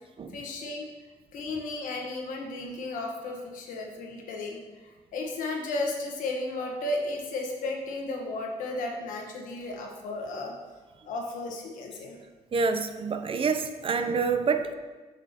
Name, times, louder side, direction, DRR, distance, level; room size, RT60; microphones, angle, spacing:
voice 1, 0.3-0.8 1.3-10.5 11.0-12.2, left 2 dB, 90° left, 1 dB, 1.2 m, -34 dB
voice 2, 12.5-14.7, right 5 dB, 40° right, 8 dB, 0.5 m, -27 dB
7.9 x 6.2 x 2.9 m, 1.3 s
cardioid pair, 95°, 14 cm